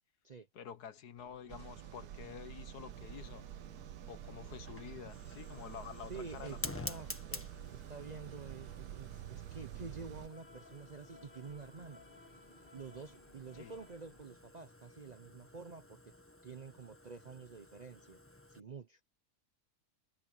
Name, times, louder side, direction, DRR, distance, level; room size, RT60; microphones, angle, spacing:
voice 1, 0.5-3.5 4.1-7.1 13.5-13.7, left 8 dB, 80° left, 1.7 m, -49 dB
sound 1, 1.2-14.2, left 2 dB, 35° left, 3.7 m, -63 dB
sound 2, 1.5-10.3, right 12 dB, 85° right, 1.2 m, -48 dB
Fire, 2.9-18.6, left 1 dB, 10° left, 1.4 m, -51 dB
voice 2, 6.1-12.0 12.7-16.0 16.4-18.2 18.5-19.0, right 5 dB, 45° right, 0.5 m, -49 dB
omnidirectional pair, 1.7 m